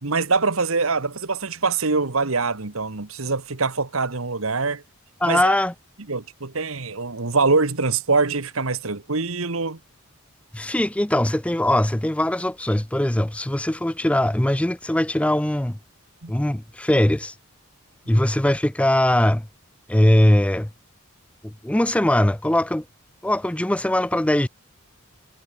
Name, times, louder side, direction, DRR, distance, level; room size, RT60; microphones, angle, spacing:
voice 1, 0.0-4.8 5.2-5.5 6.1-9.8 16.2-16.3, right 4 dB, 80° right, 1.6 m, -24 dB
voice 2, 5.2-5.7 10.5-15.8 16.3-17.3 18.1-19.5 19.9-20.7 21.4-22.8 23.2-24.5, left 1 dB, 5° left, 0.4 m, -21 dB
head